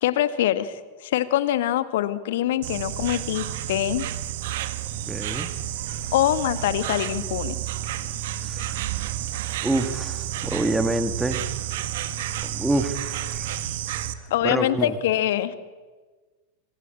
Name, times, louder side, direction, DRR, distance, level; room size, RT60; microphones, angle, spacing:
voice 1, 0.0-4.1 6.1-7.5 14.3-15.5, left 12 dB, 55° left, 13 dB, 1.6 m, -24 dB
Insect, 2.6-14.1, right 12 dB, 55° right, 1.8 m, -30 dB
voice 2, 5.1-5.5 8.4-8.9 9.6-11.4 12.4-13.7 14.4-15.0, right 2 dB, 5° right, 9 dB, 2.4 m, -27 dB
26.5 x 26.0 x 8.6 m, 1.3 s
figure-of-eight pair, 90°, 0 cm